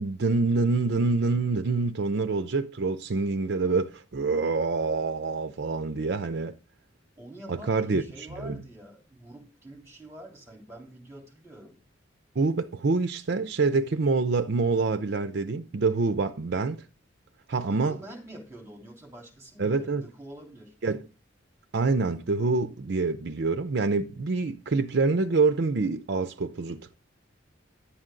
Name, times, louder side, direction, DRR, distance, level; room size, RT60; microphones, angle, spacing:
voice 1, 0.0-6.5 7.5-8.6 12.4-16.8 17.5-18.0 19.6-20.1 20.8-21.1 21.7-26.9, right 3 dB, 60° right, 0.5 m, -26 dB
voice 2, 7.2-11.8 17.6-20.7, right 1 dB, 15° right, 3.4 m, -46 dB
11.5 x 7.7 x 3.8 m
head